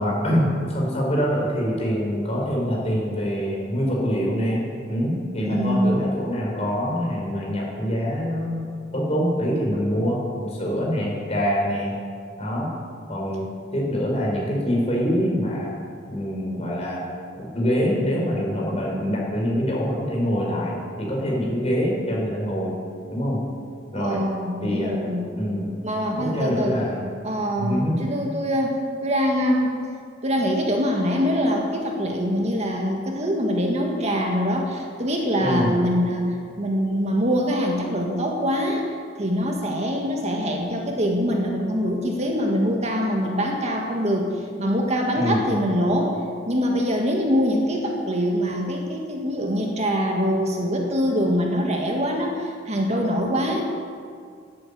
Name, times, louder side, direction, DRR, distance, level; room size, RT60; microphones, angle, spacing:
voice 1, 0.0-11.9 12.4-12.7 13.1-13.4 13.7-15.7 16.1-17.0 17.4-22.7 23.1-23.4 23.9-24.2 24.6-24.9 25.4-25.7 26.2-27.0 27.6-28.1 35.4-35.7 45.2-45.4, equal, 35° left, -3 dB, 4.9 m, -25 dB
voice 2, 5.3-6.0 23.9-25.3 25.8-26.8 27.2-29.8 30.2-38.8 39.2-44.3 44.6-46.2 46.5-53.6, equal, 35° right, 1 dB, 1.9 m, -24 dB
13.0 x 11.5 x 8.4 m, 2.2 s
head